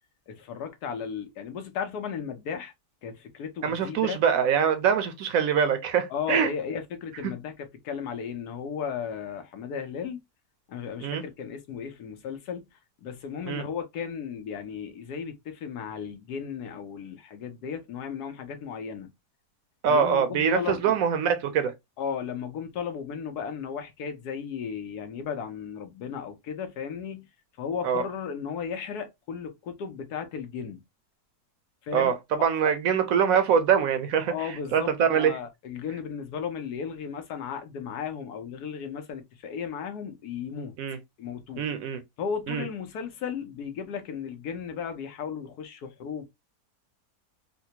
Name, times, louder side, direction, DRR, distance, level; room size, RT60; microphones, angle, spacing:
voice 1, 0.3-2.7 3.0-4.2 6.1-10.2 10.7-12.6 13.0-19.1 19.9-21.0 22.0-27.3 27.6-30.8 31.8-32.1 32.6-32.7 34.3-40.7 41.2-41.7 42.2-46.3, left 7 dB, 80° left, 1.3 m, -35 dB
voice 2, 3.6-6.5 11.0-11.2 13.5-13.6 19.8-21.7 27.8-28.0 31.9-34.3 34.7-35.3 40.8-41.0 41.6-42.0 42.5-42.7, right 7 dB, 70° right, 0.9 m, -24 dB
4.1 x 2.2 x 2.8 m
omnidirectional pair, 1.6 m